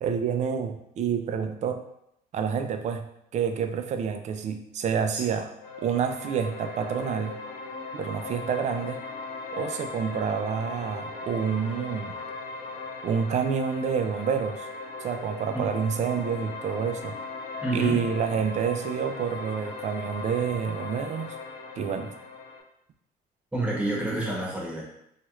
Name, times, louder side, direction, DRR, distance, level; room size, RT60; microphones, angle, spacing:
voice 1, 0.0-1.8 2.3-5.5 5.8-7.4 7.9-9.0 9.5-12.2 13.0-14.7 15.0-17.2 17.7-21.4 21.8-22.1, right 7 dB, 45° right, 6 dB, 0.4 m, -28 dB
sound 1, 5.6-22.6, left 3 dB, 90° left, 0.6 m, -38 dB
voice 2, 17.6-18.0 23.5-24.8, right 2 dB, 5° right, -4 dB, 1.0 m, -28 dB
3.0 x 2.4 x 3.0 m, 0.76 s
cardioid pair, 110°, 17 cm